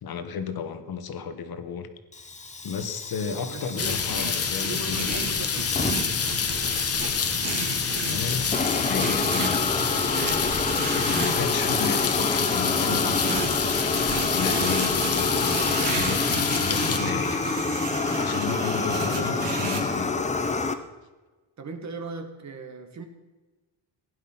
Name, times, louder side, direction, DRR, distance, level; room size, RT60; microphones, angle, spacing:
voice 1, 0.0-1.9 2.6-5.5 8.0-10.1 10.9-17.4 18.1-20.1, left 6 dB, 50° left, 9 dB, 1.5 m, -33 dB
Fire, 2.1-20.7, left 3 dB, 15° left, 0.8 m, -28 dB
voice 2, 3.5-4.0 4.6-6.2 21.6-23.1, right 4 dB, 35° right, 6 dB, 1.9 m, -38 dB
sound 1, 3.6-12.0 12.7-19.8, right 5 dB, 65° right, 3.0 m, -34 dB
sound 2, 3.8-17.0, left 6 dB, 30° left, 1.1 m, -27 dB
16.5 x 11.0 x 5.7 m, 1.2 s
cardioid pair, 155°, 46 cm